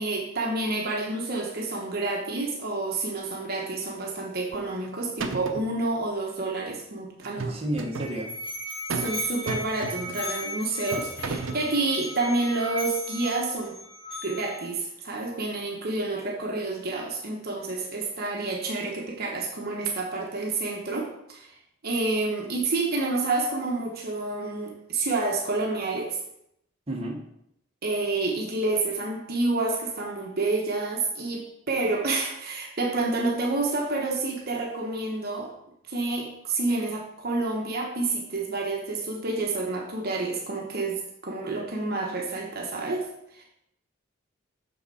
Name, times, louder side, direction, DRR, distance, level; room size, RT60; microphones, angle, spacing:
voice 1, 0.0-7.5 8.9-13.7 14.2-21.5 21.8-26.2 27.8-35.5 35.8-43.5, right 3 dB, 50° right, 0 dB, 1.0 m, -29 dB
sound 1, 4.5-4.9 5.2-5.7 7.2-8.1 8.9-9.2 9.5-10.2 10.9-11.7, right 3 dB, 70° right, 0.7 m, -33 dB
voice 2, 7.4-8.3 26.9-27.2, right 1 dB, 30° right, -1 dB, 1.1 m, -31 dB
Musical instrument, 7.7-14.7, left 1 dB, 25° left, 1.8 m, -37 dB
6.4 x 5.7 x 4.2 m, 0.77 s
head